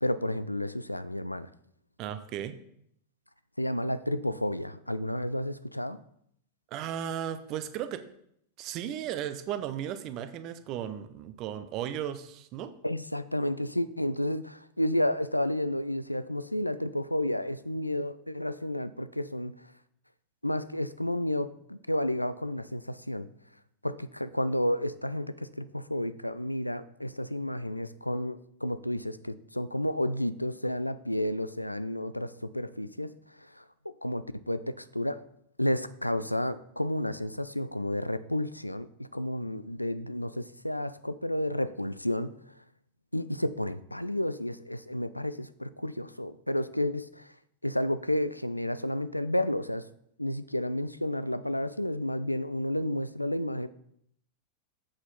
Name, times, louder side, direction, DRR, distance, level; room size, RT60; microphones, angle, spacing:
voice 1, 0.0-1.5 3.6-6.0 12.8-19.5 20.4-23.3 23.8-33.6 34.0-35.2 35.6-42.3 43.1-47.3 47.6-49.8 50.2-53.7, left 1 dB, 85° left, 16 dB, 0.3 m, -31 dB
voice 2, 2.0-2.5 6.7-8.0 8.6-12.7, right 10 dB, 40° right, 11 dB, 0.7 m, -35 dB
7.8 x 6.3 x 4.1 m, 0.71 s
figure-of-eight pair, 90°, 0 cm